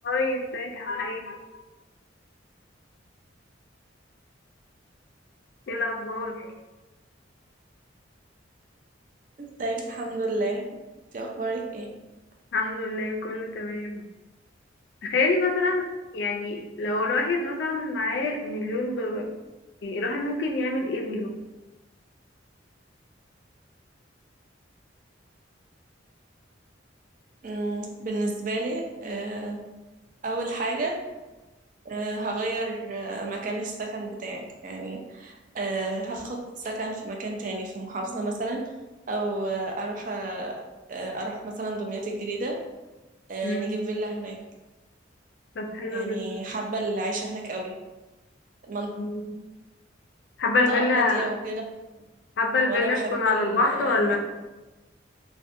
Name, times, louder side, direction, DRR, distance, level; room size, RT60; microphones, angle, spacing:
voice 1, 0.0-1.4 5.7-6.5 12.5-14.0 15.0-15.8 16.1-19.3 19.8-21.4 43.4-43.7 45.6-46.2 49.0-49.3 50.4-51.3 52.4-54.2, left 3 dB, 60° left, 2 dB, 0.4 m, -26 dB
voice 2, 9.4-10.6 11.1-11.9 27.4-29.6 30.2-31.0 31.8-38.6 39.1-40.6 40.9-42.6 43.3-44.4 45.9-47.7 48.6-48.9 50.7-51.6 52.0-52.1 52.7-54.2, right 2 dB, 45° right, 1 dB, 0.4 m, -31 dB
2.6 x 2.2 x 2.5 m, 1.1 s
head